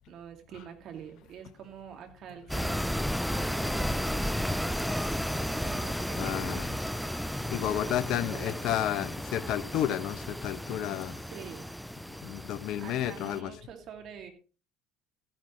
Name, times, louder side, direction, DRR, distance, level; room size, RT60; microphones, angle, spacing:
voice 1, 0.0-2.9 3.4-5.2 5.5-7.5 7.8-8.5 11.2-11.7 12.8-14.3, right 8 dB, 55° right, 2.4 m, -47 dB
sound 1, 2.5-13.4, equal, ahead, 0.5 m, -33 dB
voice 2, 6.2-6.7 7.5-11.2 12.2-13.5, left 11 dB, 60° left, 0.8 m, -31 dB
14.0 x 10.5 x 3.1 m
hypercardioid pair, 65°, 0 cm